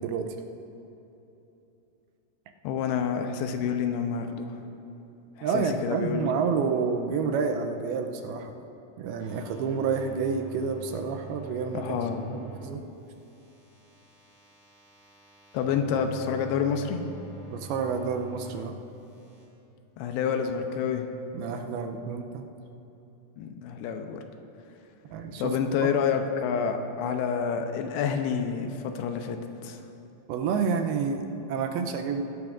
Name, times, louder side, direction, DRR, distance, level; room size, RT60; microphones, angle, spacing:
voice 1, 0.0-0.3 5.4-8.5 9.0-12.0 12.3-12.8 17.5-18.8 21.3-22.4 25.1-25.9 30.3-32.2, right 5 dB, 80° right, 5 dB, 2.5 m, -29 dB
voice 2, 2.6-4.6 5.4-6.2 11.7-12.4 15.5-17.0 20.0-21.1 23.4-24.2 25.4-29.8, left 7 dB, 85° left, 6 dB, 2.6 m, -28 dB
sound 1, 9.2-12.7 13.0-18.7 19.0-19.4, right 3 dB, 20° right, 3.0 m, -46 dB
19.5 x 12.0 x 2.5 m, 2.9 s
omnidirectional pair, 4.6 m